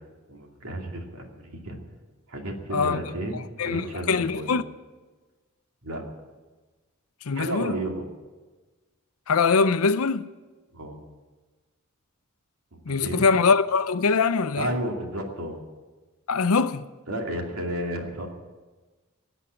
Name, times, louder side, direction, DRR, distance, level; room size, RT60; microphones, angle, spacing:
voice 1, 0.3-1.8 2.3-4.5 5.8-6.0 7.4-8.0 10.7-11.0 12.7-13.3 14.6-15.6 17.1-18.3, right 1 dB, 85° right, 2.6 m, -32 dB
voice 2, 3.3-4.6 7.2-7.8 9.3-10.3 12.9-14.8 16.3-16.9, left 4 dB, 90° left, 0.6 m, -23 dB
17.0 x 8.2 x 9.8 m
head